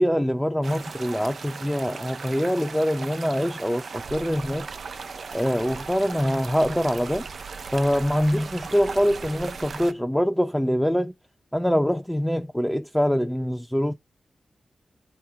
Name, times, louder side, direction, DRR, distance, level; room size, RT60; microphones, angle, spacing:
voice 1, 0.0-4.7 5.3-7.3 7.7-11.1 11.5-13.9, equal, 5° left, 0.7 m, -24 dB
sound 1, 0.6-9.9, right 5 dB, 70° right, 0.5 m, -37 dB
8.4 x 3.2 x 3.6 m
cardioid pair, 40°, 0 cm